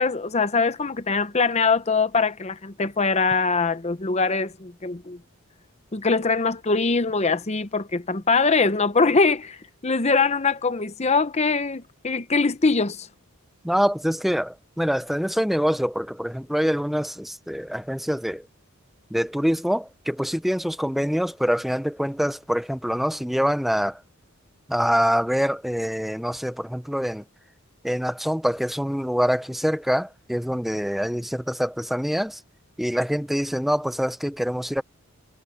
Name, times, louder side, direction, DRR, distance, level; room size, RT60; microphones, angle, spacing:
voice 1, 0.0-5.2 5.9-9.6 9.8-13.1, left 4 dB, 30° left, 0.8 m, -22 dB
voice 2, 13.6-18.5 19.1-24.0 24.7-27.2 27.8-32.4 32.8-34.8, equal, ahead, 0.6 m, -25 dB
head